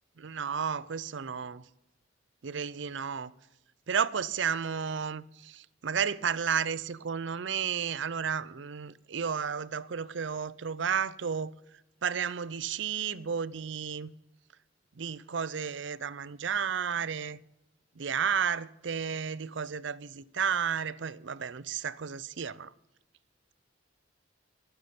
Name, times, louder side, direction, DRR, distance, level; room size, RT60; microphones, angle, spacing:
voice 1, 0.2-1.6 2.4-3.3 3.9-11.5 12.0-14.1 15.0-17.4 18.0-22.7, right 7 dB, 70° right, 0.6 m, -32 dB
14.5 x 6.8 x 8.5 m
head